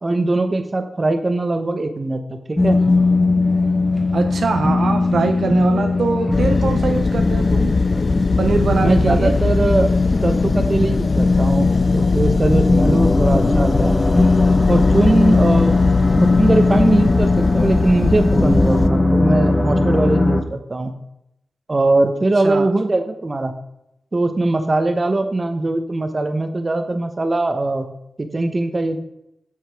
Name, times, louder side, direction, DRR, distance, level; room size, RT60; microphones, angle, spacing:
voice 1, 0.0-2.8 8.8-9.9 10.2-11.7 11.9-14.0 14.7-15.7 16.2-20.9 21.7-23.5 24.1-27.9 28.2-29.0, right 2 dB, 35° right, 7 dB, 1.0 m, -20 dB
sound 1, 2.6-20.4, left 3 dB, 25° left, 1.0 m, -18 dB
voice 2, 4.1-7.7 8.4-9.3 22.4-22.7, right 4 dB, 75° right, 5 dB, 0.6 m, -22 dB
sound 2, 6.3-18.9, left 4 dB, 55° left, 0.3 m, -20 dB
7.7 x 6.4 x 3.5 m, 0.83 s
cardioid pair, 60°, 0 cm